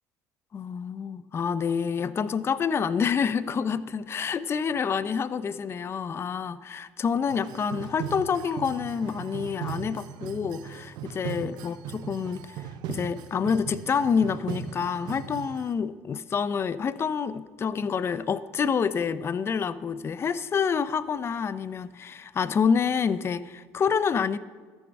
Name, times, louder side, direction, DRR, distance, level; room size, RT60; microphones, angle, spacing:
voice 1, 0.5-24.4, left 6 dB, 35° left, 15 dB, 0.5 m, -28 dB
sound 1, 7.3-15.7, right 9 dB, 70° right, 0.7 m, -38 dB
13.5 x 7.1 x 5.2 m, 1.5 s
supercardioid pair, 80°, 7 cm